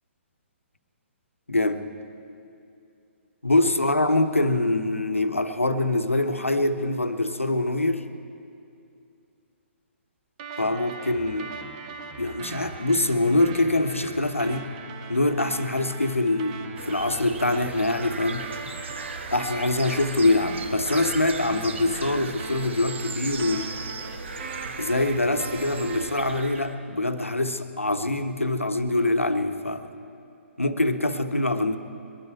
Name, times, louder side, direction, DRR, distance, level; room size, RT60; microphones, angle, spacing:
voice 1, 1.5-1.8 3.4-8.0 10.6-11.6 12.2-14.7 15.1-18.5 19.3-23.7 24.8-29.9 30.6-31.8, left 2 dB, 85° left, 9 dB, 1.0 m, -24 dB
sound 1, 10.4-26.4, right 5 dB, 30° right, 1.3 m, -40 dB
sound 2, 16.8-26.7, right 3 dB, 60° right, 1.3 m, -37 dB
22.5 x 11.5 x 4.6 m, 2.6 s
figure-of-eight pair, 130°, 7 cm